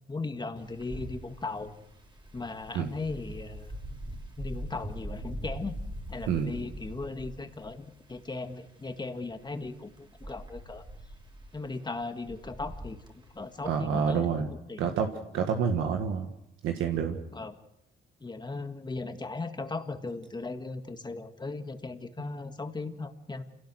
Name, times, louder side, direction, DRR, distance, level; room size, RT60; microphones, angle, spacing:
voice 1, 0.1-1.7 2.3-3.7 4.4-5.8 6.1-10.8 11.5-13.0 13.4-14.3 14.7-14.8 17.3-17.5 18.2-23.4, left 3 dB, 20° left, 7 dB, 1.9 m, -37 dB
Wind, 0.6-13.7, right 1 dB, 25° right, 3.2 m, -43 dB
voice 2, 13.6-14.5 14.8-16.3 16.6-17.2, right 7 dB, 90° right, 4 dB, 1.7 m, -28 dB
27.5 x 17.5 x 6.4 m, 0.83 s
cardioid pair, 90°, 20 cm